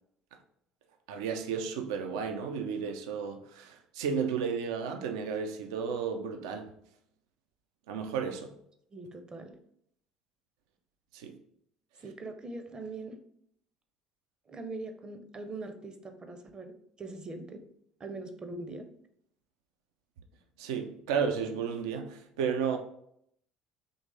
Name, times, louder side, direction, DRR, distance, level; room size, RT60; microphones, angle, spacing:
voice 1, 1.1-6.7 7.9-8.5 11.1-11.4 20.6-22.8, right 6 dB, 65° right, 0.4 m, -33 dB
voice 2, 8.9-9.5 12.0-13.2 14.5-17.6 18.0-18.9, right 2 dB, 30° right, 0.6 m, -42 dB
3.9 x 3.1 x 3.3 m
figure-of-eight pair, 55°, 3 cm